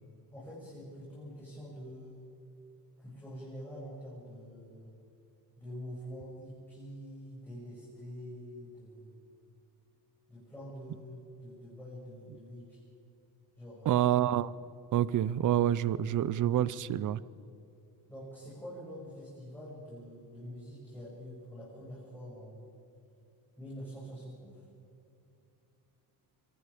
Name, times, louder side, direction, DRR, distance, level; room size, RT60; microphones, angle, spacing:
voice 1, 0.3-2.2 3.0-4.9 5.6-9.2 10.3-12.8 13.6-14.2 18.1-22.7 23.6-24.6, equal, 5° left, -8 dB, 7.4 m, -46 dB
voice 2, 13.9-14.5 14.9-17.2, right 11 dB, 50° right, 19 dB, 0.7 m, -27 dB
25.5 x 23.0 x 5.2 m, 2.7 s
cardioid pair, 145°, 40 cm